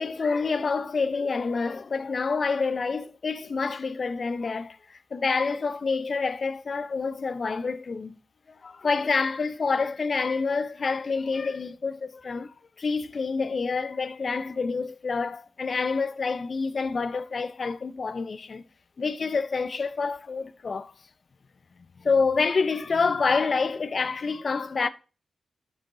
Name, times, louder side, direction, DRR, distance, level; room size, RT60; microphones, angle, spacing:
voice 1, 0.0-4.8 5.1-8.2 8.6-18.6 19.0-20.9 22.0-24.9, left 4 dB, 55° left, 0.8 m, -27 dB
12.0 x 6.6 x 3.9 m
cardioid pair, 45°, 0 cm